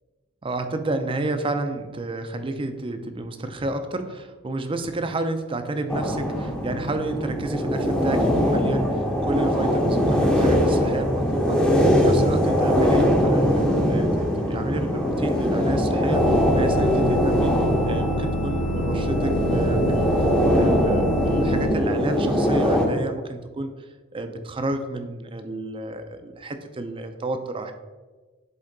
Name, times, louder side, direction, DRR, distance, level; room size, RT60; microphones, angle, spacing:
voice 1, 0.4-23.7 24.1-27.7, right 2 dB, 25° right, 8 dB, 0.5 m, -30 dB
sound 1, 5.9-22.9, equal, 5° left, 0.7 m, -21 dB
sound 2, 16.0-21.7, equal, 85° left, 1.9 m, -28 dB
7.9 x 3.7 x 3.9 m, 1.3 s
head